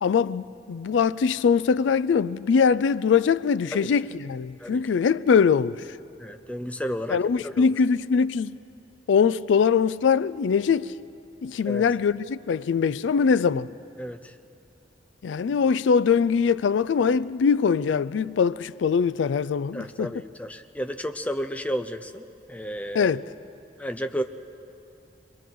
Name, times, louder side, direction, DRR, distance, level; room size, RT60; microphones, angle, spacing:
voice 1, 0.0-5.8 7.1-8.6 9.1-11.0 11.4-13.7 15.2-20.1 22.9-23.3, left 6 dB, 85° left, 0.4 m, -22 dB
voice 2, 6.2-7.7 11.7-11.9 14.0-14.4 19.7-23.1 23.8-24.2, equal, 10° left, 0.6 m, -32 dB
27.0 x 22.5 x 4.6 m
head